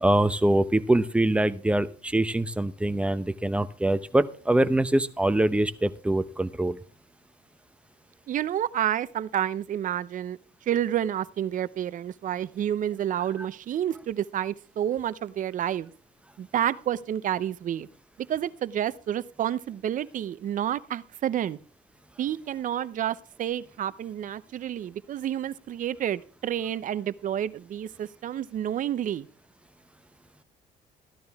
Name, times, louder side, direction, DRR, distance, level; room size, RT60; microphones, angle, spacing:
voice 1, 0.0-6.8 13.4-13.5, right 1 dB, 5° right, 0.8 m, -24 dB
voice 2, 8.3-10.4 10.7-15.9 16.4-17.9 18.3-21.6 22.2-29.3, right 10 dB, 50° right, 0.7 m, -29 dB
14.5 x 12.0 x 3.5 m
cardioid pair, 110°, 17 cm